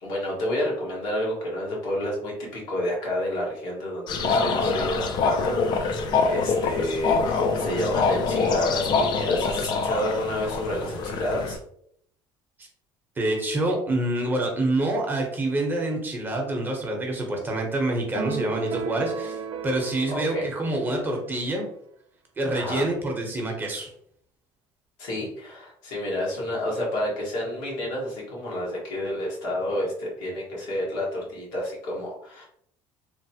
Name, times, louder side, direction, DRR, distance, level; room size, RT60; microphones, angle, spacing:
voice 1, 0.0-11.6 20.1-20.4 22.5-22.9 25.0-32.5, left 1 dB, 85° left, -4 dB, 1.3 m, -30 dB
sound 1, 4.1-11.6, left 4 dB, 45° left, 0.4 m, -25 dB
voice 2, 13.2-19.4 19.6-21.7 22.4-23.9, right 1 dB, 20° right, 1 dB, 0.7 m, -26 dB
sound 2, 18.2-21.7, right 5 dB, 60° right, 0.4 m, -34 dB
3.1 x 2.0 x 2.7 m, 0.68 s
cardioid pair, 120°, 10 cm